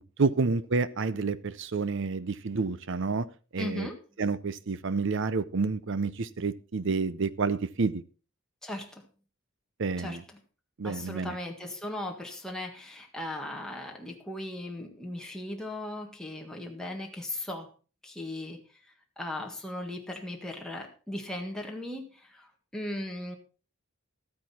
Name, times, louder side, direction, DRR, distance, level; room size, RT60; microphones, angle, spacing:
voice 1, 0.2-3.3 3.5-3.9 4.2-8.0 9.8-10.2 10.8-11.3, right 4 dB, 60° right, 17 dB, 0.7 m, -29 dB
voice 2, 3.6-4.0 8.6-9.1 10.0-10.4 10.8-17.7 18.0-23.4, left 1 dB, 5° left, 1 dB, 1.7 m, -38 dB
12.5 x 9.3 x 4.3 m, 0.35 s
head